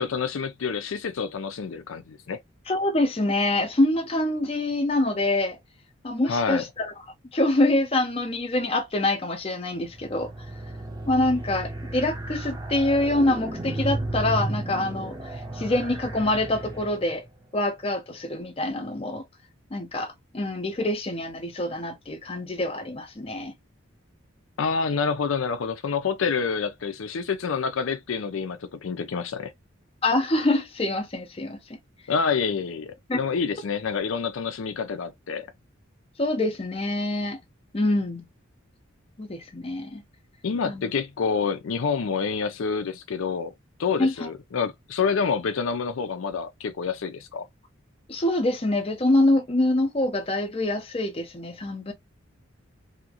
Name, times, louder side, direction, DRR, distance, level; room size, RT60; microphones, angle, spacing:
voice 1, 0.0-2.4 6.2-6.6 24.6-29.5 32.1-35.5 40.4-43.5 43.8-47.4, left 5 dB, 70° left, 0.5 m, -27 dB
voice 2, 2.7-5.6 6.0-6.9 7.3-10.3 11.1-17.2 17.5-19.2 19.7-23.5 30.0-31.6 33.1-33.2 36.2-37.4 37.7-38.3 39.2-40.0 40.6-40.9 44.0-44.3 48.1-51.9, left 1 dB, 30° left, 0.6 m, -25 dB
sound 1, 9.8-17.3, right 2 dB, 20° right, 0.6 m, -34 dB
2.8 x 2.5 x 2.8 m
head